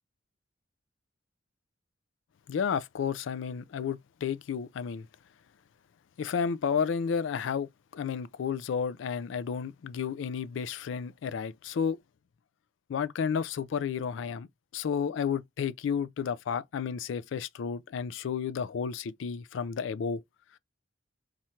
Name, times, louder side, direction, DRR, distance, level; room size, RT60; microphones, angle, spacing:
voice 1, 2.5-5.1 6.2-12.0 12.9-14.5 14.7-20.2, left 6 dB, 65° left, 0.3 m, -32 dB
4.3 x 2.5 x 4.3 m
head